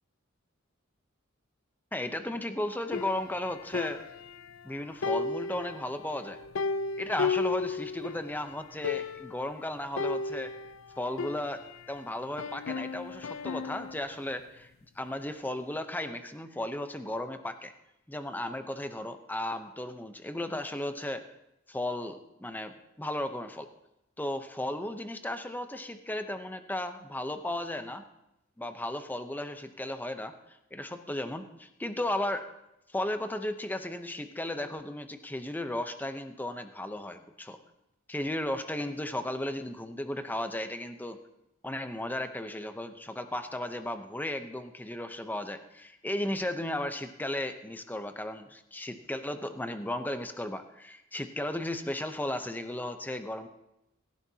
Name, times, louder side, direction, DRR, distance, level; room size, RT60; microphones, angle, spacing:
voice 1, 1.9-4.0 4.6-6.4 7.0-10.5 11.0-11.6 11.9-14.7 15.0-17.7 18.1-21.2 21.7-23.7 24.2-28.0 28.6-30.3 30.7-32.4 32.9-37.6 38.1-41.2 41.6-53.5, left 1 dB, 10° left, 8 dB, 0.7 m, -35 dB
piano played badly, 2.9-4.7 5.0-8.3 8.6-8.7 8.8-9.4 10.0-12.0 12.4-14.0, left 4 dB, 70° left, 0.5 m, -34 dB
17.0 x 15.0 x 2.8 m, 0.86 s
head